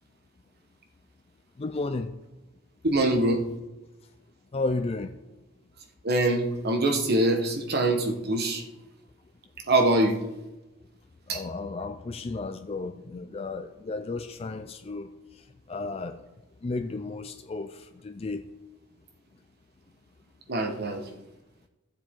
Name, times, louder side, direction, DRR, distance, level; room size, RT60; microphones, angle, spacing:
voice 1, 1.6-2.1 4.5-5.1 11.3-16.2 16.6-18.5, left 3 dB, 30° left, 8 dB, 0.4 m, -33 dB
voice 2, 2.8-3.4 6.0-8.6 9.7-10.2 11.3-11.4 20.5-21.1, right 1 dB, 50° right, 4 dB, 1.3 m, -24 dB
15.0 x 7.4 x 3.7 m, 1.1 s
head